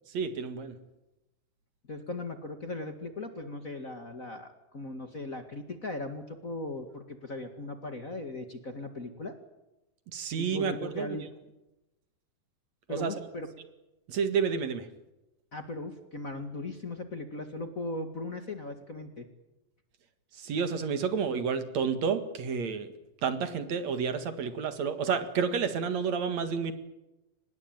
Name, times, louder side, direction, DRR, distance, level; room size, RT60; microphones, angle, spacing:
voice 1, 0.1-0.8 10.1-11.2 12.9-13.1 14.1-14.9 20.4-22.9 23.2-26.7, right 6 dB, 65° right, 10 dB, 3.0 m, -30 dB
voice 2, 1.9-9.3 10.4-11.3 12.9-13.5 15.5-19.3, left 2 dB, 30° left, 7 dB, 1.9 m, -38 dB
25.0 x 20.5 x 9.0 m, 0.96 s
omnidirectional pair, 3.5 m